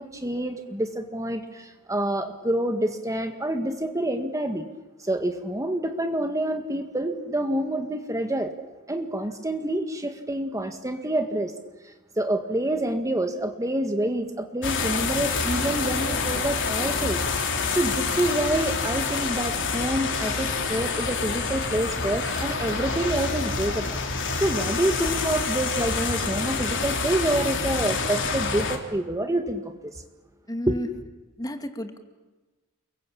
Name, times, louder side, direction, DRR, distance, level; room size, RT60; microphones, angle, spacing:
voice 1, 0.0-4.7 5.0-8.5 8.9-11.5 12.2-17.2 17.7-30.0 30.7-30.8, right 1 dB, 15° right, 6 dB, 1.8 m, -27 dB
sound 1, 14.6-28.8, left 4 dB, 60° left, 3.8 m, -27 dB
sound 2, 22.1-27.6, right 4 dB, 75° right, 4.4 m, -45 dB
voice 2, 30.5-30.9 31.4-32.0, left 1 dB, 15° left, 6 dB, 2.4 m, -31 dB
30.0 x 22.0 x 8.7 m, 1.2 s
head